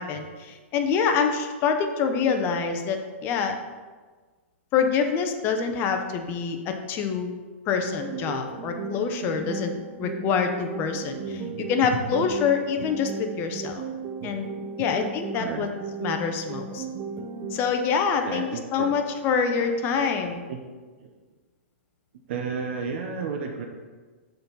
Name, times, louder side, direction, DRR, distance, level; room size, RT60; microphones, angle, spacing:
voice 1, 0.0-3.6 4.7-7.3 7.7-9.7 10.0-11.4 11.7-13.8 14.2-14.5 14.8-15.7 16.0-16.8 17.5-18.5 18.7-20.5, left 6 dB, 30° left, 5 dB, 0.7 m, -26 dB
sound 1, 7.8-17.8, right 4 dB, 30° right, 0.5 m, -36 dB
voice 2, 11.3-11.7 12.8-12.9 14.2-14.3 14.8-14.9 15.3-15.7 18.2-18.9 20.5-20.6 21.0-21.1 22.3-23.6, right 5 dB, 60° right, 2 dB, 0.8 m, -33 dB
6.8 x 4.0 x 5.4 m, 1.4 s
hypercardioid pair, 145°, 7 cm